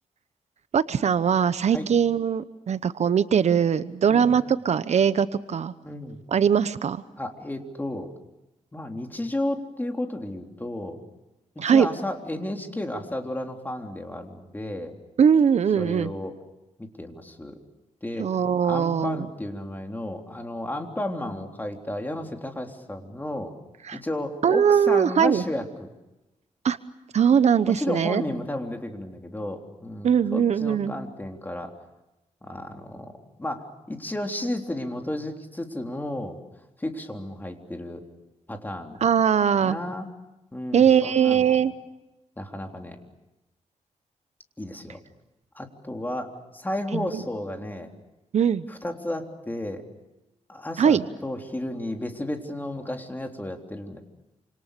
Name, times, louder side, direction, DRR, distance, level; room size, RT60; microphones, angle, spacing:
voice 1, 0.7-5.7 6.3-7.0 11.6-11.9 15.2-16.1 18.2-19.2 23.9-24.0 24.4-25.4 26.6-26.8 27.1-28.2 30.0-31.0 39.0-39.8 40.7-41.7 46.9-47.2 48.3-48.6 50.8-51.0, right 7 dB, 65° right, 13 dB, 0.9 m, -21 dB
voice 2, 5.8-6.2 7.2-8.1 8.7-11.0 11.6-14.9 15.8-16.3 16.8-17.6 18.0-18.3 18.6-23.5 23.9-25.9 27.6-31.7 32.4-33.1 33.4-36.4 36.8-38.0 38.5-39.0 39.6-40.1 40.5-41.6 42.4-43.0 44.6-45.0 45.6-47.9 48.7-49.8 50.5-54.0, left 1 dB, 15° left, 3 dB, 3.6 m, -33 dB
28.0 x 27.0 x 6.8 m, 0.97 s
cardioid pair, 100°, 12 cm